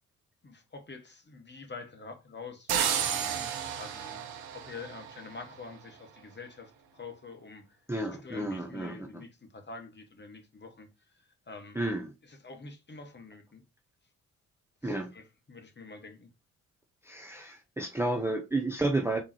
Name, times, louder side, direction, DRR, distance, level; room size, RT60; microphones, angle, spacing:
voice 1, 0.4-3.5 3.8-4.2 4.5-7.8 8.1-10.9 11.5-11.8 12.3-13.6 14.8-16.3, left 4 dB, 25° left, 1.1 m, -46 dB
sound 1, 2.7-5.5, right 8 dB, 70° right, 0.7 m, -32 dB
voice 2, 7.9-9.2 11.7-12.1 14.8-15.1 17.0-19.2, right 2 dB, 5° right, 0.7 m, -31 dB
3.7 x 3.1 x 2.8 m
figure-of-eight pair, 40°, 41 cm